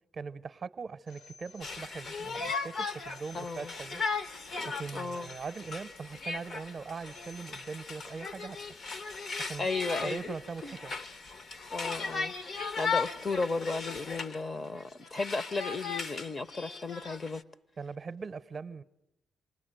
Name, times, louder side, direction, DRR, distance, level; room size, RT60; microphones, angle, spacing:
voice 1, 0.1-4.0 4.8-8.6 9.4-9.7 10.0-10.9 17.8-18.8, right 5 dB, 40° right, 0.9 m, -41 dB
Telephone, 1.1-2.3 3.1-4.3 5.1-6.3 7.1-8.3 9.1-10.3, left 4 dB, 80° left, 2.9 m, -57 dB
Conversation, 1.6-14.4 14.8-17.4, left 4 dB, 55° left, 1.2 m, -37 dB
voice 2, 3.3-3.7 4.9-5.3 9.6-10.3 10.6-10.8 11.7-17.4, left 3 dB, 30° left, 0.9 m, -35 dB
27.5 x 19.5 x 9.1 m
cardioid pair, 90°, 0 cm